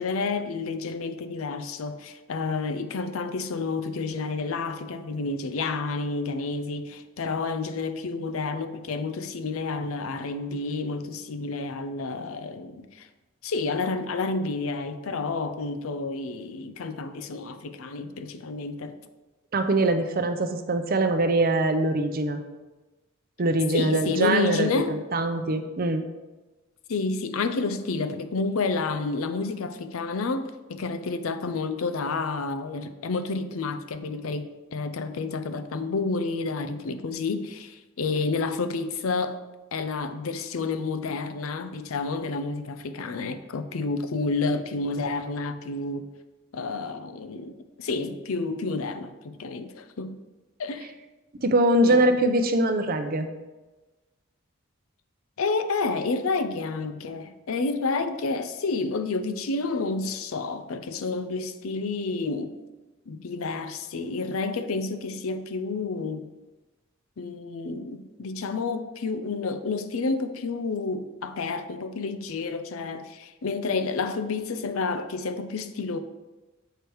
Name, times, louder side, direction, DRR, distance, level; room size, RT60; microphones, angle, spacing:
voice 1, 0.0-13.1 13.4-19.0 23.7-25.0 26.9-39.4 39.7-46.1 46.5-50.2 50.6-50.9 51.8-52.2 55.4-62.5 63.1-66.3 67.2-76.0, left 3 dB, 80° left, 0.5 m, -30 dB
voice 2, 19.5-22.4 23.4-26.0 51.4-53.3, right 2 dB, 45° right, 0.6 m, -23 dB
6.7 x 4.6 x 4.6 m
head